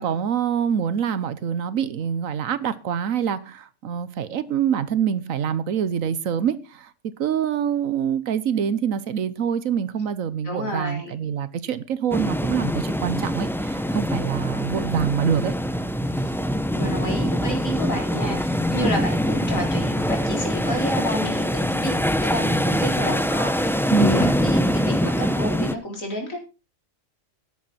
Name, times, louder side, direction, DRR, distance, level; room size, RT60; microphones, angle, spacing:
voice 1, 0.0-6.9 7.2-15.6 23.9-24.3, right 8 dB, 80° right, 1.3 m, -25 dB
voice 2, 10.4-11.1 16.2-16.3 16.7-21.9 22.2-26.4, equal, 75° left, 4.2 m, -30 dB
sound 1, 12.1-25.7, equal, 5° left, 0.3 m, -24 dB
13.0 x 10.0 x 4.2 m
omnidirectional pair, 1.4 m